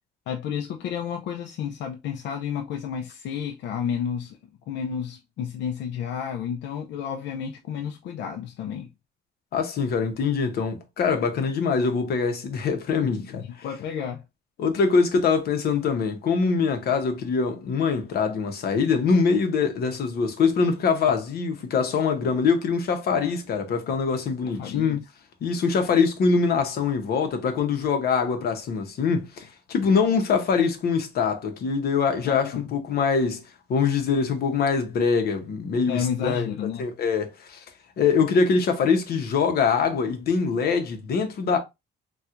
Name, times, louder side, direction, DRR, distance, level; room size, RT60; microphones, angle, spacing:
voice 1, 0.3-4.4 4.7-8.9 13.3-14.2 24.4-25.0 32.2-32.7 35.9-36.9, left 8 dB, 80° left, 0.4 m, -31 dB
voice 2, 9.5-13.4 14.6-25.0 25.4-33.4 33.7-36.5 36.8-37.6 38.0-41.6, left 5 dB, 60° left, 0.8 m, -23 dB
4.2 x 2.3 x 2.4 m
cardioid pair, 140°, 18 cm